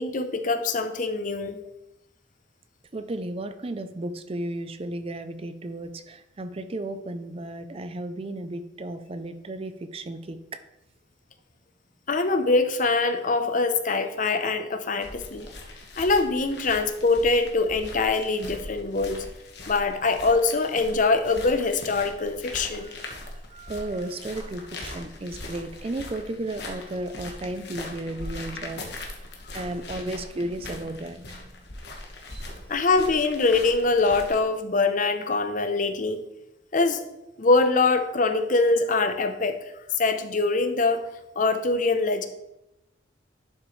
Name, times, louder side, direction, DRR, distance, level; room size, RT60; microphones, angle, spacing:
voice 1, 0.0-1.6 12.1-15.5 16.0-19.2 19.7-22.9 32.7-36.2 36.7-37.0 37.4-39.6 40.0-41.0 41.4-42.3, left 3 dB, 45° left, 9 dB, 0.7 m, -23 dB
voice 2, 2.9-10.6 22.7-23.1 23.5-28.9 29.5-31.5 32.3-32.4, right 1 dB, 30° right, 10 dB, 0.5 m, -34 dB
sound 1, 15.0-34.4, left 2 dB, 60° left, 1.4 m, -41 dB
11.0 x 6.1 x 3.2 m, 0.90 s
head